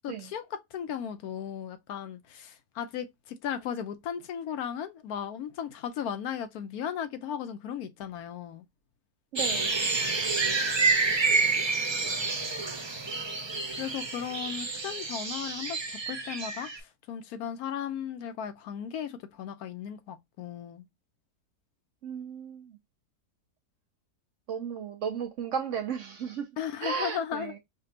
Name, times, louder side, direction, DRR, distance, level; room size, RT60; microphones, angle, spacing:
voice 1, 0.0-8.6 13.8-20.9 26.6-27.5, left 8 dB, 75° left, 1.1 m, -36 dB
voice 2, 9.3-9.8 22.0-22.8 24.5-26.4 26.8-27.6, right 6 dB, 65° right, 0.8 m, -34 dB
sound 1, 9.4-16.8, right 4 dB, 45° right, 0.3 m, -29 dB
5.0 x 2.3 x 2.7 m
omnidirectional pair, 1.7 m